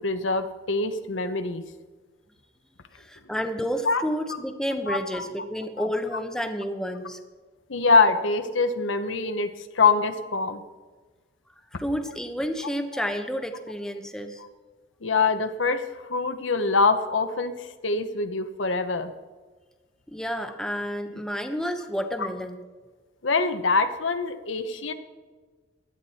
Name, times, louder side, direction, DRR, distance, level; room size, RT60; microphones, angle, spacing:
voice 1, 0.0-1.6 3.8-4.0 4.9-5.3 5.8-5.9 7.7-10.6 12.9-13.0 15.0-19.1 22.2-22.3 23.2-24.9, left 4 dB, 70° left, 9 dB, 1.0 m, -24 dB
voice 2, 2.9-7.2 11.8-14.4 20.1-22.6, equal, 5° left, 6 dB, 1.0 m, -30 dB
17.0 x 11.5 x 4.3 m, 1.4 s
head